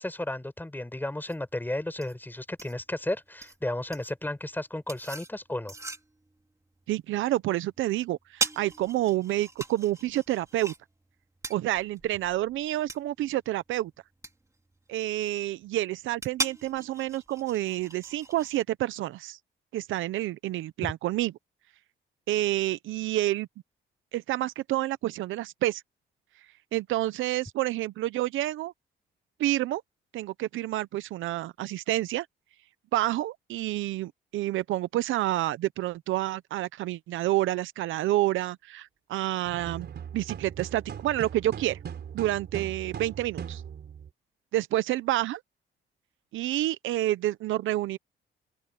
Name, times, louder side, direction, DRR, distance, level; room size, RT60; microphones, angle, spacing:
voice 1, 0.0-5.7, left 1 dB, 10° left, 4.9 m, -33 dB
sound 1, 1.3-18.6, right 2 dB, 15° right, 3.3 m, -40 dB
voice 2, 6.9-10.7 11.5-13.9 14.9-19.4 19.7-21.3 22.3-23.5 24.1-25.8 26.7-28.7 29.4-29.8 30.1-32.3 32.9-39.9 40.1-41.8 42.1-43.6 44.5-45.4 46.3-48.0, right 15 dB, 85° right, 0.7 m, -29 dB
sound 2, 39.5-44.1, right 8 dB, 55° right, 4.4 m, -39 dB
open air
cardioid pair, 90°, 20 cm